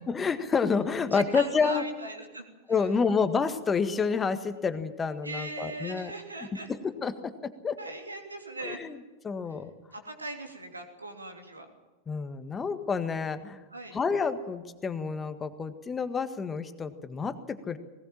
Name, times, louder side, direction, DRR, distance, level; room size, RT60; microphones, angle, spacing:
voice 1, 0.1-1.8 2.7-6.1 6.8-7.8 8.6-9.0 9.2-9.7 12.1-13.6 13.9-17.8, left 5 dB, 20° left, 10 dB, 1.7 m, -29 dB
voice 2, 1.1-2.8 5.2-6.7 7.8-8.8 9.9-11.7 13.7-14.0, right 2 dB, 80° right, 4 dB, 3.2 m, -39 dB
20.0 x 19.5 x 7.6 m, 1.2 s
figure-of-eight pair, 90°, 0 cm